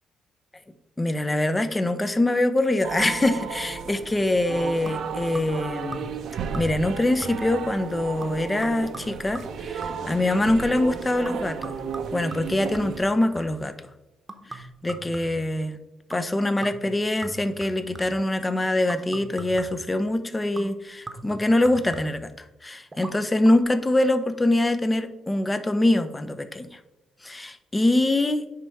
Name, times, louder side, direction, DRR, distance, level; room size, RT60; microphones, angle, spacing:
voice 1, 1.0-6.1 6.5-11.8 12.1-13.7 14.5-15.8 16.1-22.3 22.6-26.8 27.2-28.4, left 1 dB, 15° left, 11 dB, 0.6 m, -24 dB
sound 1, 2.8-13.1, right 6 dB, 70° right, 0.7 m, -34 dB
sound 2, 4.9-5.6 5.9-6.3 6.5-6.9 7.2-7.6 8.2-10.6 11.2-13.7 14.3-15.6 16.1-16.3 16.6-18.3 18.9-19.9 20.6-22.3 22.9-23.1 23.4-23.5, right 2 dB, 25° right, 1.0 m, -41 dB
9.6 x 3.3 x 4.6 m, 0.96 s
cardioid pair, 90°, 0 cm